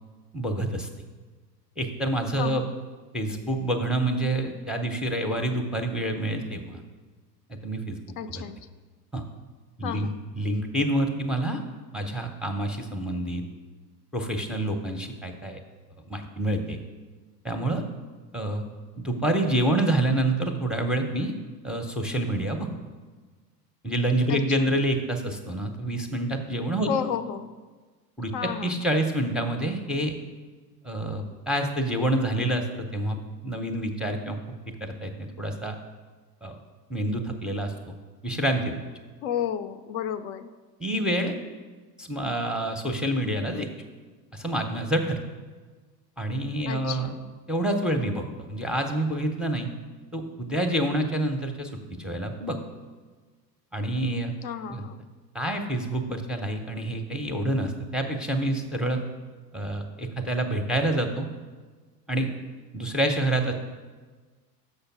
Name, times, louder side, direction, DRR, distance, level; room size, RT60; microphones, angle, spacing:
voice 1, 0.3-0.9 1.8-2.6 3.1-6.8 7.5-8.0 8.3-8.4 9.1-9.2 9.8-11.6 11.9-13.4 14.1-15.6 16.1-16.8 17.4-17.8 18.3-18.6 19.0-21.3 21.6-22.7 23.8-26.9 28.2-28.3 28.6-30.1 30.8-33.2 33.4-34.4 34.8-35.8 36.4-36.6 36.9-37.9 38.2-38.8 40.8-41.3 42.0-43.7 44.3-45.2 46.2-47.1 47.5-48.2 48.5-49.7 50.1-51.7 52.0-52.6 53.7-54.3 54.7-54.9 55.3-59.0 59.5-61.3 62.1-62.3 62.7-63.5, right 1 dB, ahead, 4 dB, 0.6 m, -27 dB
voice 2, 2.4-2.7 8.2-8.6 9.8-10.2 24.3-24.7 26.9-27.5 28.3-28.8 39.2-40.5 46.7-47.3 54.4-55.0, left 8 dB, 65° left, 10 dB, 0.6 m, -32 dB
6.6 x 5.1 x 5.8 m, 1.4 s
hypercardioid pair, 95°, 48 cm